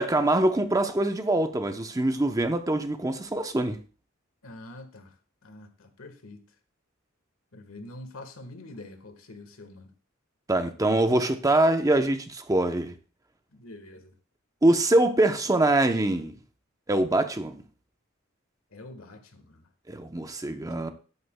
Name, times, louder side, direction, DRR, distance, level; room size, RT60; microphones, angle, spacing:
voice 1, 0.0-3.8 10.5-12.9 14.6-16.3 16.9-17.6 19.9-20.9, right 1 dB, 15° right, 0.7 m, -24 dB
voice 2, 4.4-5.1 5.4-6.4 7.5-9.9 13.5-14.1 18.7-19.7 20.2-20.3, left 2 dB, 85° left, 1.5 m, -45 dB
13.5 x 11.0 x 2.2 m
head